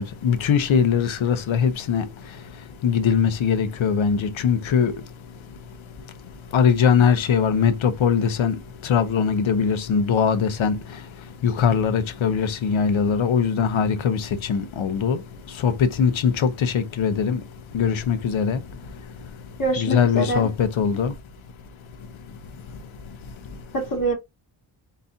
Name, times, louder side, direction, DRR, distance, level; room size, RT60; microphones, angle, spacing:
voice 1, 0.0-2.1 2.8-4.9 6.5-11.0 11.4-17.4 17.7-18.6 19.8-21.1, left 6 dB, 90° left, 0.9 m, -21 dB
voice 2, 19.6-20.5 23.7-24.1, right 1 dB, 45° left, 2.3 m, -24 dB
4.1 x 3.9 x 2.6 m
wide cardioid pair, 95°, 46 cm